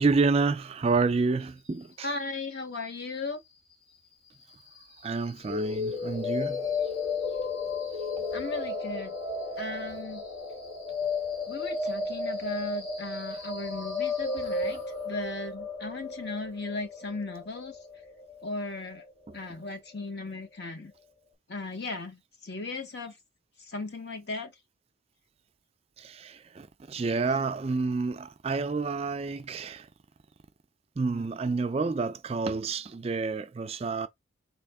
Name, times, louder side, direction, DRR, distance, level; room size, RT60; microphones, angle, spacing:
voice 1, 0.0-2.1 5.0-6.6 19.3-19.4 26.0-29.9 31.0-34.1, right 4 dB, 30° right, 0.3 m, -29 dB
voice 2, 2.0-3.4 8.3-9.1 9.6-10.2 11.5-14.8 15.0-17.8 18.4-19.0 19.3-20.9 21.5-23.1 23.7-24.5, left 3 dB, 55° left, 1.1 m, -36 dB
sound 1, 5.4-19.4, left 4 dB, 75° left, 1.7 m, -33 dB
4.2 x 2.9 x 3.5 m
head